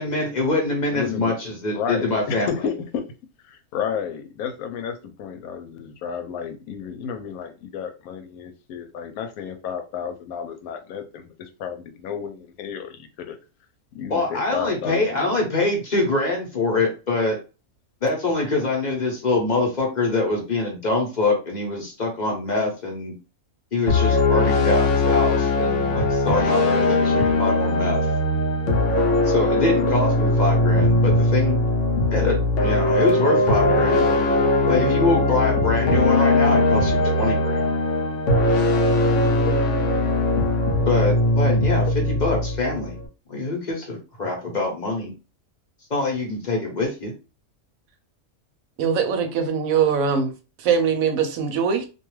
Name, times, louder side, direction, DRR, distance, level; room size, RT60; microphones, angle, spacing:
voice 1, 0.0-2.5 14.1-17.4 18.0-23.1 23.7-28.1 29.2-31.6 32.1-34.1 34.7-37.7 40.8-43.0 43.3-45.1 45.9-47.1, left 3 dB, 40° left, 0.8 m, -24 dB
voice 2, 0.9-1.4 1.7-3.1 3.4-13.4 13.9-15.3, left 7 dB, 90° left, 1.0 m, -32 dB
sound 1, 23.9-43.1, left 2 dB, 65° left, 0.8 m, -20 dB
voice 3, 48.8-51.9, right 6 dB, 75° right, 1.0 m, -22 dB
2.5 x 2.3 x 3.1 m
omnidirectional pair, 1.5 m